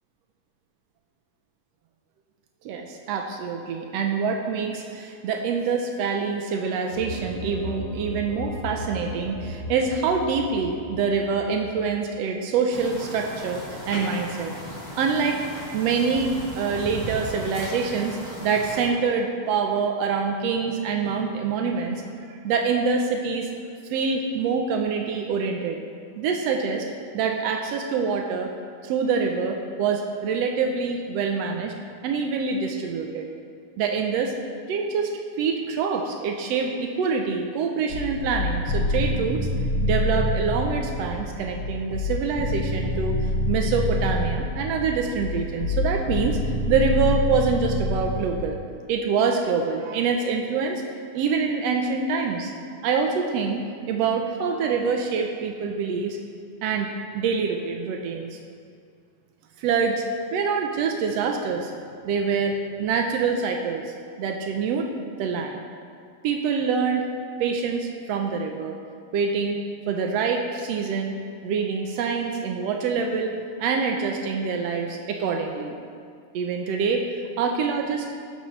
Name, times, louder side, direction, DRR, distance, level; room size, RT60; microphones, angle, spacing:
voice 1, 2.6-14.5 15.0-15.4 15.7-22.0 22.3-23.5 23.9-25.8 26.2-26.9 27.1-28.5 28.8-31.7 32.0-33.3 33.8-34.3 34.7-35.1 35.4-39.5 39.8-48.6 48.9-50.8 51.1-52.5 52.8-56.2 56.6-58.4 59.6-60.0 60.3-61.7 62.0-64.9 65.2-65.6 66.2-67.1 67.4-68.8 69.1-71.1 71.4-75.8 76.3-77.0 77.4-78.1, right 5 dB, 85° right, 3 dB, 1.4 m, -25 dB
sound 1, 6.9-12.1, left 1 dB, 40° right, 4.1 m, -36 dB
sound 2, 12.7-18.9, equal, 5° left, 3.3 m, -37 dB
sound 3, 37.9-48.4, left 2 dB, 80° left, 0.9 m, -26 dB
15.5 x 12.0 x 3.3 m, 2.3 s
omnidirectional pair, 4.0 m